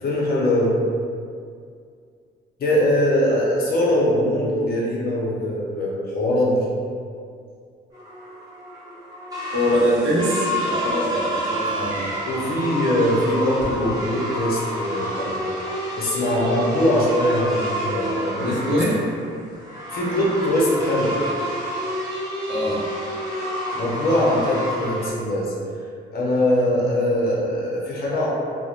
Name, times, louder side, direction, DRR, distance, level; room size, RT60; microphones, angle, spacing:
voice 1, 0.0-0.8 2.6-6.6 12.3-15.4 15.9-18.8 19.9-21.2 23.7-25.5 26.1-28.3, left 1 dB, 50° left, -5 dB, 0.7 m, -22 dB
sound 1, 7.9-25.1, equal, 20° right, 1.0 m, -29 dB
voice 2, 9.5-12.1 18.5-19.0 22.5-22.8, equal, 70° right, -5 dB, 0.7 m, -23 dB
2.8 x 2.1 x 2.4 m, 2.3 s
cardioid pair, 90°, 20 cm